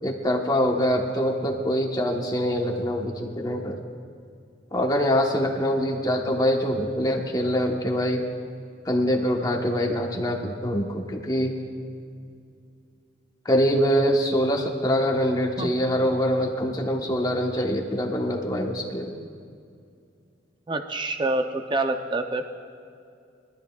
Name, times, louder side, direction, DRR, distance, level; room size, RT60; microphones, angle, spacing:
voice 1, 0.0-3.8 4.7-8.2 8.8-11.5 13.4-19.1, equal, 20° left, 1 dB, 1.2 m, -24 dB
voice 2, 20.7-22.5, right 2 dB, 25° right, 6 dB, 0.6 m, -26 dB
23.5 x 12.5 x 2.4 m, 2.4 s
head